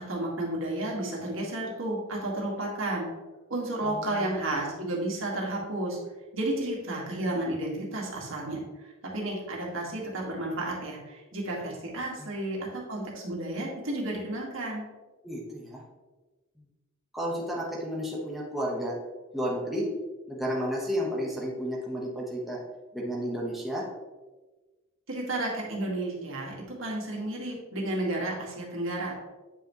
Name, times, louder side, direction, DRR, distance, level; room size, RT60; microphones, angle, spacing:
voice 1, 0.1-3.1 3.5-6.0 6.3-8.6 9.1-14.8 25.1-29.2, right 1 dB, 70° right, -2 dB, 2.0 m, -32 dB
voice 2, 3.8-4.6 12.2-12.3 15.2-15.8 16.6-16.7 17.1-19.0 19.3-19.9 20.3-22.6 22.9-23.9, equal, ahead, -5 dB, 1.3 m, -32 dB
9.0 x 5.6 x 3.1 m, 1.2 s
head